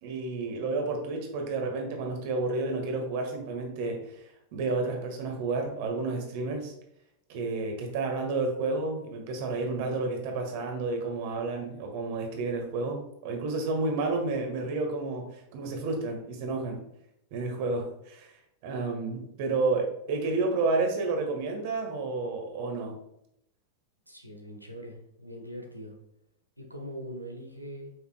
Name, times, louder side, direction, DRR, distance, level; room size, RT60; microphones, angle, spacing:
voice 1, 0.0-4.2 4.5-6.7 7.3-16.8 17.3-18.4 18.6-22.9, right 3 dB, 50° right, 2 dB, 1.6 m, -31 dB
voice 2, 24.1-26.0 26.6-27.9, equal, 90° right, 2 dB, 1.2 m, -42 dB
7.9 x 5.8 x 2.3 m, 0.76 s
figure-of-eight pair, 90°, 0 cm